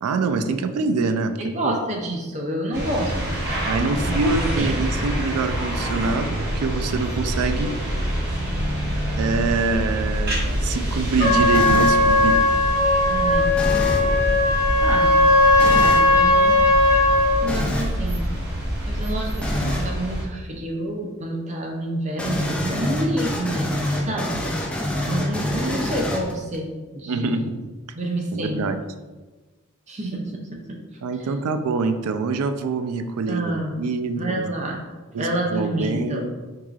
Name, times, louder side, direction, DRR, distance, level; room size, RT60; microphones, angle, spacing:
voice 1, 0.0-1.3 1.6-1.7 3.6-7.7 9.1-12.4 27.1-27.6 28.3-28.8 31.0-34.4 35.1-36.3, right 4 dB, 85° right, 9 dB, 0.4 m, -25 dB
voice 2, 1.4-3.4 3.9-4.2 4.5-4.7 13.1-13.5 14.8-15.2 15.6-16.6 17.4-18.3 18.9-24.7 25.0-27.5 28.0-28.6 29.9-30.8 31.2-31.3 33.3-33.8 34.1-34.8 35.2-36.3, right 1 dB, 30° right, 0 dB, 0.6 m, -28 dB
sound 1, 2.7-20.2, equal, 50° right, 1.1 m, -26 dB
Trumpet, 11.2-17.4, left 2 dB, 30° left, 0.9 m, -18 dB
sound 2, 11.5-12.1 13.5-14.1 15.6-16.1 17.5-18.0 19.4-19.9 22.2-26.6, left 1 dB, 5° left, 0.4 m, -26 dB
4.7 x 3.6 x 2.4 m, 1.3 s
head